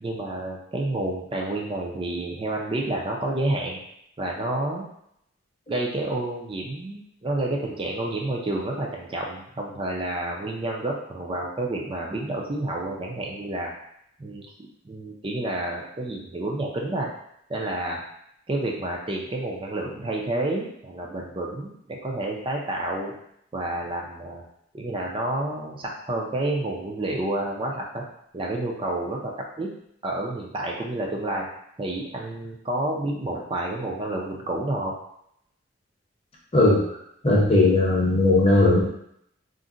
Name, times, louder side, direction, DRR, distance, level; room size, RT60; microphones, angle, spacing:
voice 1, 0.0-3.8 4.2-4.8 5.7-13.7 14.2-14.5 14.8-17.1 17.5-18.0 18.5-23.1 23.5-24.4 24.7-28.0 28.3-29.7 30.0-31.5 31.8-35.0, right 1 dB, 25° right, -1 dB, 0.4 m, -29 dB
voice 2, 37.2-38.8, left 2 dB, 30° left, -4 dB, 0.8 m, -18 dB
2.5 x 2.1 x 3.7 m, 0.74 s
head